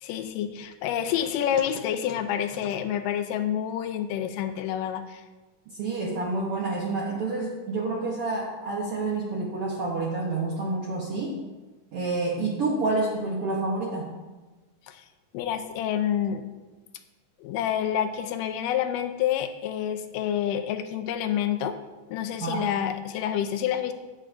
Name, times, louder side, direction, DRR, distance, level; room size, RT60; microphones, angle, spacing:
voice 1, 0.0-5.2 14.9-15.0 15.3-16.4 17.4-21.7 22.1-23.9, left 10 dB, 85° left, 8 dB, 2.2 m, -28 dB
voice 2, 5.7-11.4 11.9-14.1 22.4-22.7, right 3 dB, 70° right, -3 dB, 1.4 m, -28 dB
11.0 x 8.6 x 2.5 m, 1.2 s
omnidirectional pair, 3.8 m